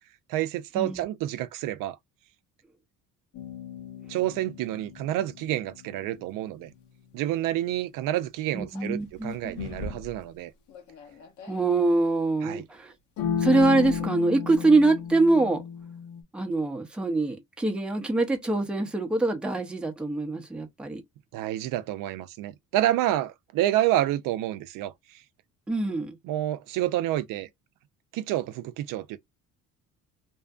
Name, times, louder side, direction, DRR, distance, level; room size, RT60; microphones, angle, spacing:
voice 1, 0.3-2.0 4.1-6.7 7.1-10.5 12.4-12.6 21.3-25.2 26.2-27.5 28.1-29.2, right 14 dB, 80° right, 0.5 m, -28 dB
sound 1, 3.3-5.7 8.8-8.9 9.6-10.1 10.7-11.6 13.2-16.2, left 7 dB, 65° left, 0.8 m, -33 dB
voice 2, 8.5-9.6 11.5-12.9 13.4-15.6 16.3-21.0 25.7-26.2, right 2 dB, 5° right, 0.5 m, -24 dB
2.6 x 2.4 x 2.3 m
cardioid pair, 140°, 33 cm